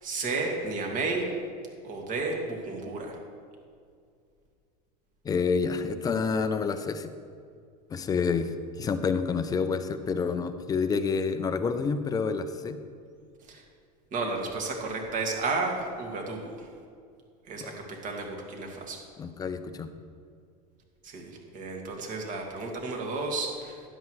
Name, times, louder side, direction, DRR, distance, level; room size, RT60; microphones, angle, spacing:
voice 1, 0.0-1.3 1.8-3.2 13.5-13.6 14.1-16.7 17.5-19.0 21.0-23.8, right 3 dB, 40° right, 1 dB, 2.1 m, -32 dB
voice 2, 5.2-7.1 7.9-12.8 17.6-17.7 19.2-19.9, left 5 dB, 20° left, 10 dB, 0.5 m, -28 dB
12.5 x 10.5 x 3.2 m, 2.3 s
supercardioid pair, 140°, 20 cm